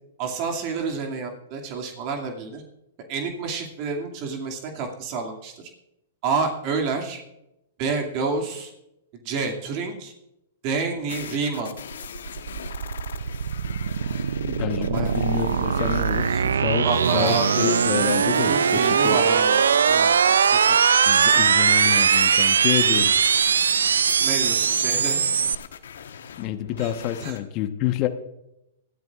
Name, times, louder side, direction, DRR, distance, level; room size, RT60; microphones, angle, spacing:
voice 1, 0.2-2.6 3.1-5.5 6.2-7.2 7.8-8.7 9.2-10.1 10.6-11.7 14.9-15.1 16.3-17.7 18.4-19.6 19.9-20.6 21.0-21.1 24.2-25.2 26.8-26.9 27.2-27.4, right 4 dB, 45° right, 2 dB, 2.3 m, -29 dB
sound 1, 11.1-27.4, left 8 dB, 70° left, 1.2 m, -40 dB
sound 2, 11.8-25.6, right 7 dB, 75° right, 0.4 m, -21 dB
voice 2, 14.4-16.9 17.1-19.2 21.1-23.1 26.4-28.1, left 12 dB, 40° left, 7 dB, 1.1 m, -28 dB
21.0 x 13.5 x 2.5 m, 0.85 s
hypercardioid pair, 110°, 0 cm